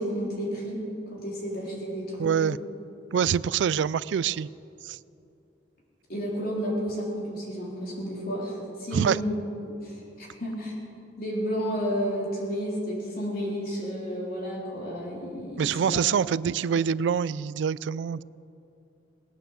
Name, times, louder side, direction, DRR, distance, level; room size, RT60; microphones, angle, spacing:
voice 1, 0.0-2.6 6.1-10.7 11.2-16.0, equal, 55° left, -4 dB, 4.0 m, -32 dB
voice 2, 2.2-2.6 3.1-4.5 4.8-5.0 8.9-9.2 15.6-18.2, right 7 dB, 80° right, 20 dB, 0.3 m, -25 dB
19.5 x 9.1 x 7.5 m, 2.8 s
head